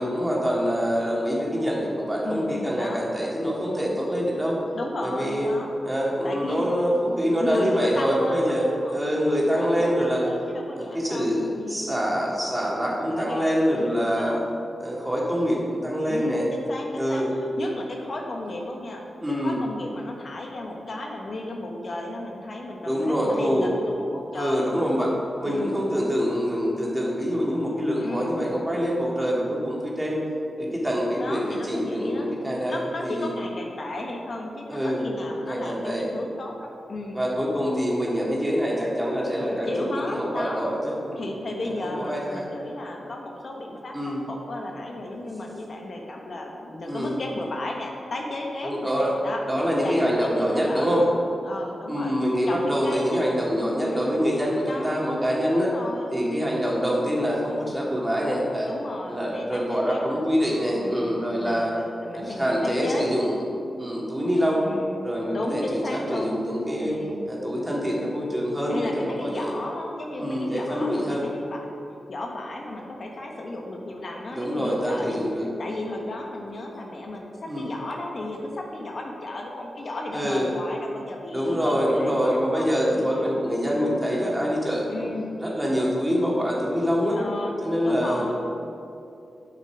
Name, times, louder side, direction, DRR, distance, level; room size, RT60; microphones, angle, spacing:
voice 1, 0.0-4.6 5.0-5.5 5.8-10.3 10.8-14.4 14.8-16.5 17.0-17.3 19.2-19.6 22.8-23.7 24.3-25.1 25.4-30.2 30.6-33.3 34.7-35.0 35.5-36.1 37.1-39.7 40.1-41.2 41.8-42.4 43.9-44.2 46.9-47.1 48.6-49.1 49.5-51.1 51.9-55.7 56.1-58.7 59.1-61.7 62.1-63.3 63.8-64.6 65.0-67.0 67.3-69.5 70.2-71.3 74.3-75.5 77.5-77.7 80.1-80.5 81.3-85.1 85.4-87.2 87.6-88.3, equal, 15° right, -4 dB, 2.4 m, -25 dB
voice 2, 2.2-3.0 4.7-5.8 6.2-9.0 9.3-11.9 13.0-13.5 13.7-14.5 16.1-19.0 19.4-24.8 25.4-25.8 28.0-28.5 31.2-32.4 32.7-37.2 39.6-40.7 41.2-44.0 44.3-49.4 49.8-52.2 52.5-53.3 53.8-54.2 54.6-55.0 55.5-56.5 58.7-60.3 60.8-63.1 64.6-66.4 66.8-67.2 68.0-68.1 68.7-71.6 72.1-83.2 84.9-85.3 87.1-87.6 87.8-88.3, left 2 dB, 60° left, 0 dB, 1.2 m, -34 dB
8.4 x 6.3 x 6.0 m, 2.6 s
cardioid pair, 65°, 0 cm